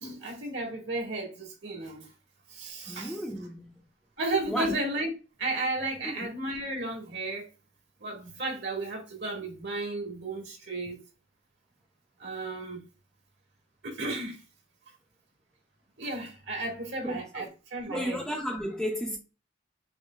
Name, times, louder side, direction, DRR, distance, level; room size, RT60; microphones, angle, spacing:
voice 1, 0.0-2.1 2.5-3.2 4.2-5.1 5.4-7.5 8.0-11.0 12.2-12.8 13.8-14.4 16.0-18.2, right 2 dB, 60° right, 1.8 m, -33 dB
voice 2, 2.9-3.8 4.5-4.7 6.0-6.3 17.0-17.4 17.9-19.2, equal, 5° left, 0.6 m, -33 dB
6.3 x 2.7 x 2.3 m
head